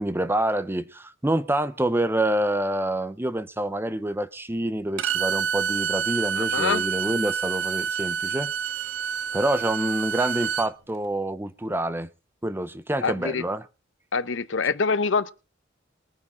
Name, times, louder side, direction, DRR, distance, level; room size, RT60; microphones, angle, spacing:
voice 1, 0.0-8.8 9.3-12.1 12.4-13.6, right 1 dB, 10° right, 0.7 m, -27 dB
Bowed string instrument, 5.0-10.7, right 7 dB, 80° right, 0.6 m, -28 dB
voice 2, 6.3-6.8 13.0-13.4 14.1-15.3, left 5 dB, 80° left, 0.8 m, -25 dB
21.5 x 9.8 x 3.7 m
head